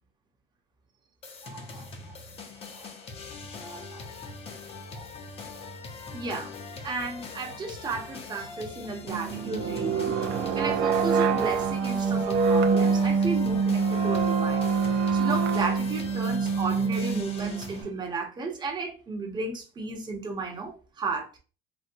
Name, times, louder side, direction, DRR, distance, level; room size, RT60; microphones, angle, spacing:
sound 1, 1.2-17.8, left 4 dB, 30° left, 0.5 m, -42 dB
voice 1, 1.4-1.9 2.7-2.9 3.6-4.1 4.9-5.1 6.1-6.5 6.8-10.2 10.5-14.8 15.1-21.4, right 3 dB, 20° right, 0.7 m, -34 dB
sound 2, 9.1-17.8, right 5 dB, 70° right, 0.5 m, -25 dB
4.1 x 2.0 x 2.6 m
cardioid pair, 160°, 21 cm